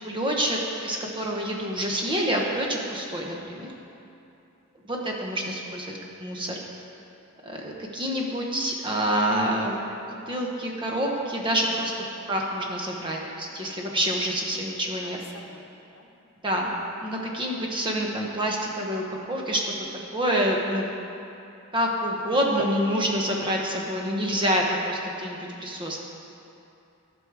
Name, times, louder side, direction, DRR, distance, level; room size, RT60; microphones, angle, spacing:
voice 1, 0.0-3.7 4.8-5.9 6.2-6.6 7.4-10.0 10.3-11.9 12.3-15.2 16.4-16.7 17.0-19.7 20.1-20.9 21.7-26.1, equal, 20° right, -1 dB, 1.0 m, -27 dB
voice 2, 11.7-12.0 13.9-14.0 15.0-16.1 25.6-25.7, left 3 dB, 75° left, 2 dB, 0.8 m, -49 dB
11.5 x 6.2 x 4.8 m, 2.8 s
head